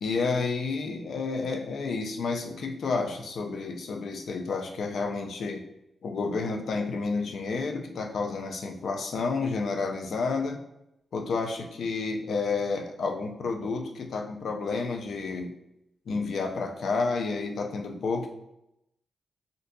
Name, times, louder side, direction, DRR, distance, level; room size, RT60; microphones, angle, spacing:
voice 1, 0.0-5.6 6.0-10.6 11.1-15.5 16.1-18.3, left 4 dB, 60° left, 4 dB, 0.4 m, -30 dB
3.8 x 2.6 x 2.2 m, 0.83 s
wide cardioid pair, 175°, 0 cm